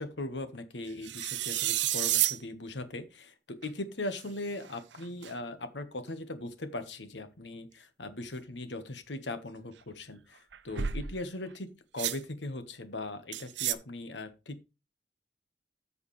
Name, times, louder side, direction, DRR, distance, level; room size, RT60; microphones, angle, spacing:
voice 1, 0.0-14.7, left 2 dB, 90° left, 9 dB, 1.4 m, -39 dB
sound 1, 1.0-2.4 3.6-3.7 4.2-4.3 5.0-5.3 10.5-11.1 12.0-12.2 13.3-13.7, right 12 dB, 85° right, 0.6 m, -30 dB
14.0 x 4.9 x 3.2 m, 0.27 s
head